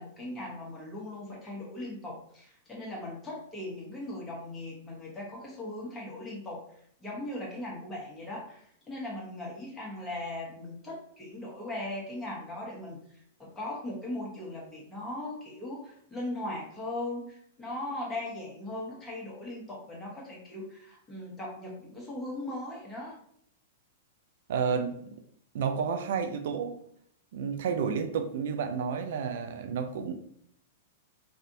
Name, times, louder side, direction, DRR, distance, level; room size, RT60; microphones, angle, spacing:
voice 1, 0.0-23.2, left 1 dB, 15° left, -4 dB, 1.3 m, -39 dB
voice 2, 24.5-25.0 25.5-26.8 27.3-30.1, right 6 dB, 65° right, 7 dB, 0.3 m, -30 dB
3.3 x 2.5 x 2.7 m, 0.67 s
hypercardioid pair, 115°, 0 cm